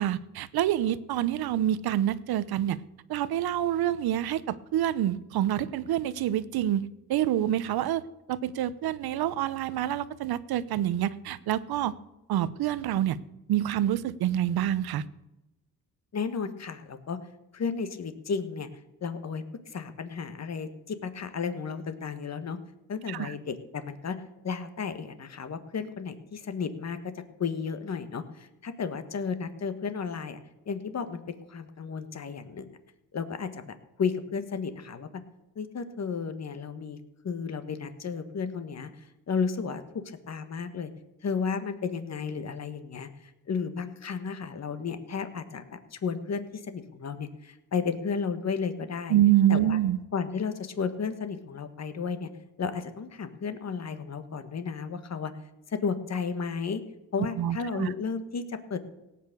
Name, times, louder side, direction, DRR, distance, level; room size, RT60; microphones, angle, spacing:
voice 1, 0.0-2.8 3.1-6.8 7.1-8.0 8.3-11.9 12.3-13.2 13.5-15.0 23.1-23.3 49.1-50.0 57.4-57.9, right 12 dB, 85° right, 16 dB, 0.8 m, -27 dB
voice 2, 16.1-17.2 17.5-18.7 19.0-22.6 22.9-27.1 27.4-30.4 30.6-32.7 33.1-35.2 35.5-37.0 37.2-40.9 41.2-49.2 49.5-49.8 50.1-52.3 52.6-55.3 55.7-56.8 57.1-58.8, left 5 dB, 45° left, 10 dB, 1.6 m, -33 dB
17.5 x 8.8 x 6.8 m, 0.95 s
cardioid pair, 100°, 36 cm